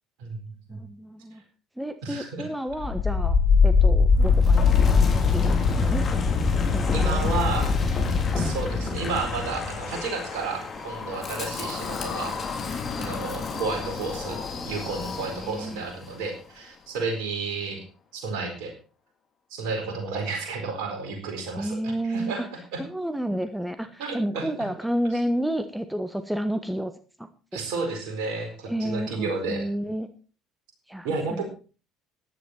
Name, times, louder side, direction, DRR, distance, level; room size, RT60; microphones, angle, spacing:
voice 1, 0.7-1.4 1.8-3.4 3.6-4.7 5.1-6.0 6.7-7.3 14.5-14.7 15.3-15.8 21.6-22.5 22.9-26.9 28.7-30.1 30.9-31.5, right 1 dB, 5° right, 10 dB, 1.2 m, -30 dB
voice 2, 2.0-2.5 6.9-7.7 8.3-12.4 13.0-14.4 14.7-17.8 18.1-18.7 19.5-22.8 24.0-24.5 27.5-29.7 31.0-31.5, right 4 dB, 65° right, 4 dB, 4.4 m, -32 dB
Wind, 2.7-15.7, left 5 dB, 40° left, 3.4 m, -24 dB
14.5 x 10.5 x 4.4 m, 0.36 s
figure-of-eight pair, 55°, 0 cm